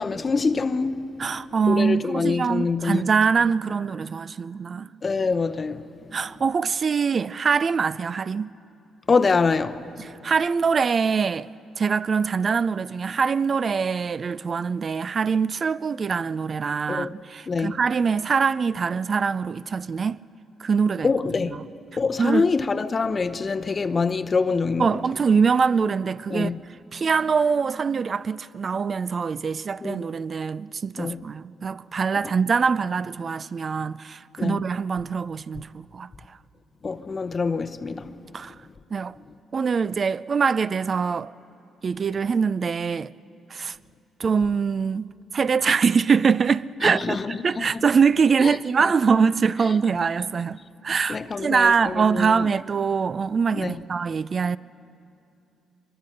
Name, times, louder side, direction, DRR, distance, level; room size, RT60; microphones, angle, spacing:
voice 1, 0.0-1.1 1.7-3.0 5.0-6.1 9.1-9.8 16.9-17.2 17.5-17.8 21.0-21.6 22.0-25.0 26.3-26.6 29.8-30.0 31.0-31.2 34.4-34.6 36.8-38.2 46.8-47.8 48.4-48.6 51.1-52.5 53.5-53.8, left 4 dB, 35° left, 0.7 m, -25 dB
voice 2, 1.2-4.9 6.1-8.5 10.2-11.5 11.8-20.2 20.6-21.1 22.2-22.5 24.8-26.5 26.9-36.1 38.3-38.5 38.9-39.2 39.5-41.3 41.8-43.1 43.5-43.8 44.2-47.2 47.4-54.6, right 5 dB, 40° right, 0.4 m, -23 dB
23.5 x 22.0 x 6.6 m
cardioid pair, 90°, 0 cm